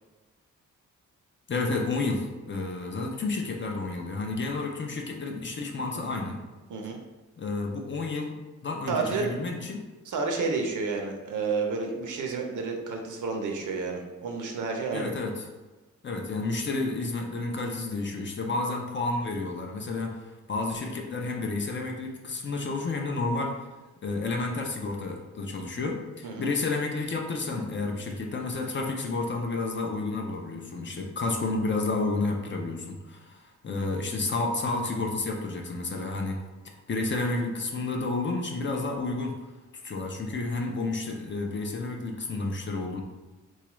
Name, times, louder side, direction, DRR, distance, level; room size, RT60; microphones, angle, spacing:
voice 1, 1.5-6.4 7.4-8.3 8.6-9.9 14.9-15.4 16.0-23.7 24.0-36.4 36.9-39.3 39.8-43.0, left 3 dB, 35° left, 2 dB, 0.4 m, -31 dB
voice 2, 8.9-9.3 10.1-15.1 26.2-26.5, right 4 dB, 70° right, 2 dB, 0.6 m, -30 dB
3.9 x 2.3 x 3.0 m, 1.2 s
wide cardioid pair, 145°, 32 cm